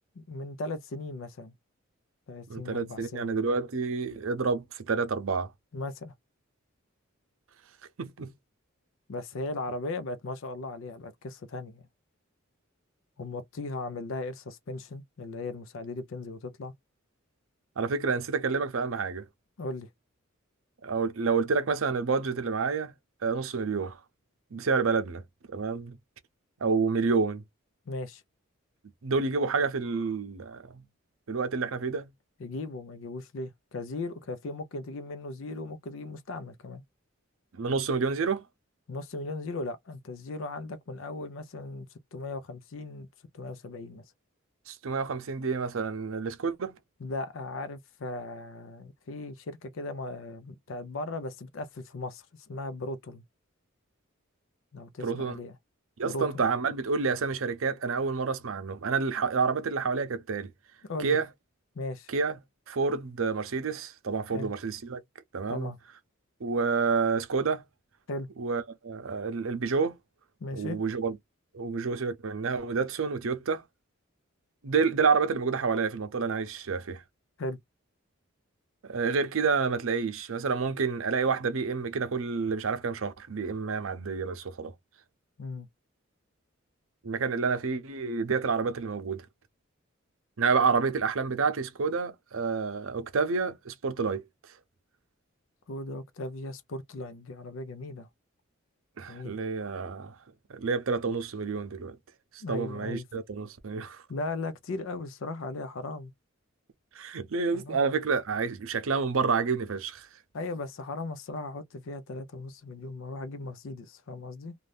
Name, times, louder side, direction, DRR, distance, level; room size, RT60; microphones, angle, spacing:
voice 1, 0.2-1.5 2.3-3.4 5.7-6.1 9.1-11.8 13.2-16.7 19.6-19.9 27.9-28.2 32.4-36.8 38.9-41.9 42.1-43.1 43.3-44.0 47.0-53.2 54.7-55.5 56.1-56.4 60.9-61.2 61.8-62.1 64.3-64.5 65.5-65.8 68.1-68.3 70.4-70.8 77.4-77.6 85.4-85.7 95.7-98.1 99.1-99.4 102.4-103.0 104.1-106.1 107.5-107.8 110.3-114.5, left 2 dB, 70° left, 0.5 m, -37 dB
voice 2, 2.5-5.5 8.0-8.3 17.8-19.2 20.8-22.9 23.2-24.0 24.5-25.2 25.5-26.0 26.6-27.4 29.0-30.8 31.3-32.1 37.5-38.4 44.7-46.7 55.0-55.4 56.0-60.5 61.0-61.3 62.1-62.4 62.7-65.0 65.3-65.7 66.4-67.6 68.4-69.9 70.5-71.2 71.5-73.6 74.6-77.0 78.9-84.7 87.0-89.2 90.4-94.2 99.0-100.2 100.5-102.0 102.3-104.0 106.9-110.1, right 5 dB, 75° right, 0.6 m, -29 dB
2.6 x 2.3 x 3.3 m
head